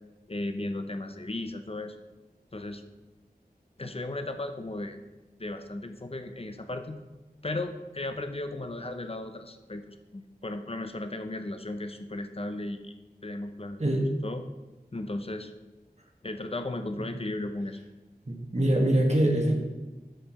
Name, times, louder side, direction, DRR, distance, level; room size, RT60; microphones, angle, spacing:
voice 1, 0.3-2.0 2.5-2.8 3.8-5.0 5.4-7.0 7.4-12.9 13.2-14.4 14.9-15.5 16.2-17.8, left 2 dB, 35° left, 7 dB, 0.6 m, -35 dB
voice 2, 18.3-19.6, right 1 dB, 40° right, 0 dB, 1.2 m, -24 dB
7.0 x 5.8 x 4.2 m, 1.1 s
wide cardioid pair, 45°, 17 cm